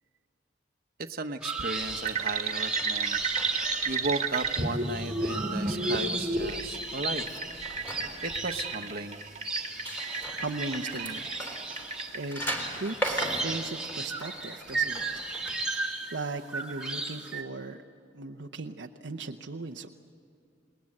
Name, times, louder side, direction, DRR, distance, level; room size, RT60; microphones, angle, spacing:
voice 1, 1.1-3.2 3.8-7.2 8.2-9.2, right 3 dB, 50° right, 6 dB, 1.2 m, -35 dB
sound 1, 1.4-17.4, right 3 dB, 5° right, 2.3 m, -36 dB
sound 2, 1.8-15.5, right 1 dB, 10° left, 3.7 m, -40 dB
sound 3, 2.0-12.2, right 3 dB, 35° right, 1.8 m, -33 dB
voice 2, 10.1-12.4 12.8-15.3 16.1-17.8 18.1-19.9, right 3 dB, 70° right, 3 dB, 0.8 m, -38 dB
27.5 x 21.0 x 7.8 m, 2.5 s
head